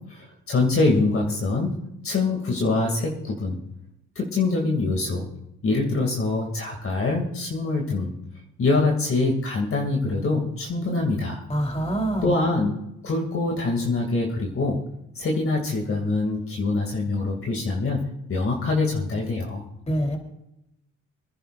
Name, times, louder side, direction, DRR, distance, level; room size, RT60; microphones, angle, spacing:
voice 1, 0.1-3.6 4.2-5.3 5.6-8.1 8.6-11.4 12.2-12.7 13.0-14.8 15.1-18.0 18.3-19.6, left 3 dB, 45° left, 0 dB, 2.5 m, -24 dB
voice 2, 11.5-12.3 19.9-20.2, right 1 dB, 20° left, 2 dB, 3.4 m, -25 dB
25.5 x 10.5 x 2.5 m, 0.83 s
cardioid pair, 90°, 30 cm